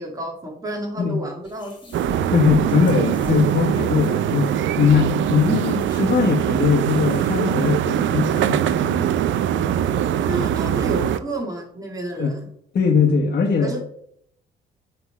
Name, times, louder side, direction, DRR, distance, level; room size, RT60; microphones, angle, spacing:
voice 1, 0.0-1.9 10.2-12.5 13.6-13.8, right 1 dB, 15° right, -1 dB, 2.5 m, -30 dB
sound 1, 1.4-8.6, left 3 dB, 25° left, 2.5 m, -44 dB
sound 2, 1.9-11.2, right 10 dB, 70° right, 0.5 m, -22 dB
voice 2, 2.3-9.1 12.2-12.3 12.7-13.7, left 6 dB, 50° left, -2 dB, 1.4 m, -20 dB
8.1 x 3.8 x 6.0 m, 0.68 s
cardioid pair, 90°, 20 cm